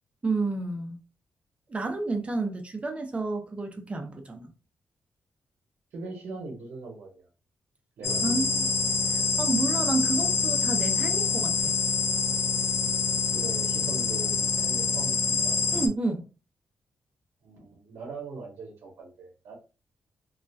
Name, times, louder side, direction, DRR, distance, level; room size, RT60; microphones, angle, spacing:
voice 1, 0.2-1.0 1.7-4.5 8.2-8.7 9.1-11.7 15.7-16.2, right 3 dB, 30° right, 0.6 m, -30 dB
voice 2, 5.9-7.2 8.0-8.5 13.3-15.6 17.4-19.6, right 3 dB, 90° right, 0.7 m, -41 dB
sound 1, 8.0-15.9, left 5 dB, 70° left, 0.4 m, -26 dB
2.3 x 2.1 x 2.6 m
cardioid pair, 95°, 4 cm